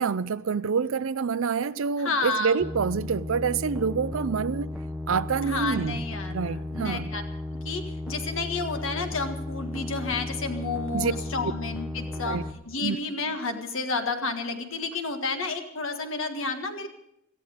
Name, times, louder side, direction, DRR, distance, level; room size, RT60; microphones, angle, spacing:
voice 1, 0.0-4.7 5.1-7.1 10.9-11.1 12.2-12.4 12.8-13.0, right 5 dB, 70° right, 0.5 m, -27 dB
voice 2, 2.0-2.5 5.4-7.2 7.6-12.4 12.7-16.9, left 3 dB, 65° left, 1.7 m, -31 dB
sound 1, 2.6-12.5, left 2 dB, ahead, 0.8 m, -35 dB
18.0 x 14.0 x 5.1 m
head